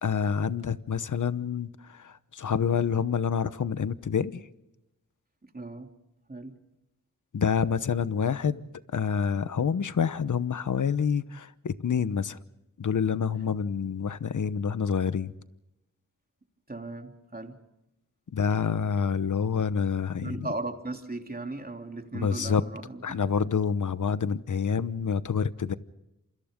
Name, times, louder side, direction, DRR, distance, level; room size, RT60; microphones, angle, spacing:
voice 1, 0.0-4.4 7.3-12.4 12.8-15.3 18.3-20.5 22.1-22.6 23.0-25.7, left 6 dB, 70° left, 1.0 m, -27 dB
voice 2, 5.4-5.9 6.3-6.5 16.7-17.6 20.2-23.2, right 2 dB, 30° right, 3.1 m, -37 dB
29.5 x 27.5 x 3.8 m
wide cardioid pair, 65°, 32 cm